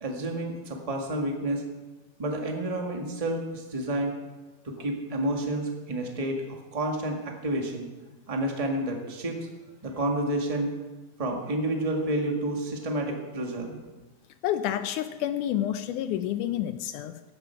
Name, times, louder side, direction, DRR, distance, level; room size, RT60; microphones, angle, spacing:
voice 1, 0.0-1.6 2.2-4.1 4.6-7.9 8.3-9.5 9.8-10.7 11.2-13.8, right 1 dB, 25° right, 1 dB, 0.8 m, -30 dB
voice 2, 14.4-17.2, left 11 dB, 80° left, 10 dB, 1.9 m, -29 dB
16.5 x 10.5 x 5.8 m, 1.2 s
omnidirectional pair, 4.0 m